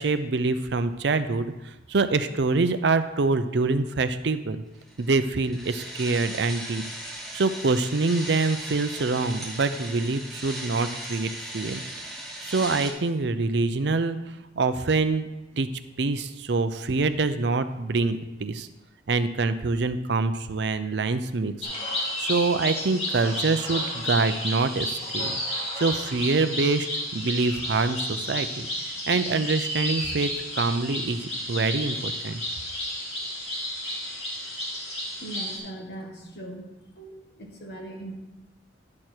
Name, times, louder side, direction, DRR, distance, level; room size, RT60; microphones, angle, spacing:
voice 1, 0.0-4.6 5.0-6.8 7.3-11.8 12.4-15.3 15.5-15.7 16.0-18.7 19.1-21.7 22.2-25.3 25.8-30.3 30.6-32.4, right 3 dB, 60° right, 10 dB, 0.5 m, -25 dB
sound 1, 4.9-12.9, right 1 dB, ahead, 1.3 m, -37 dB
sound 2, 21.6-35.6, left 1 dB, 35° left, 2.2 m, -32 dB
voice 2, 35.2-36.7 37.0-38.2, right 1 dB, 60° left, 0 dB, 1.8 m, -39 dB
10.5 x 6.5 x 4.5 m, 0.98 s
head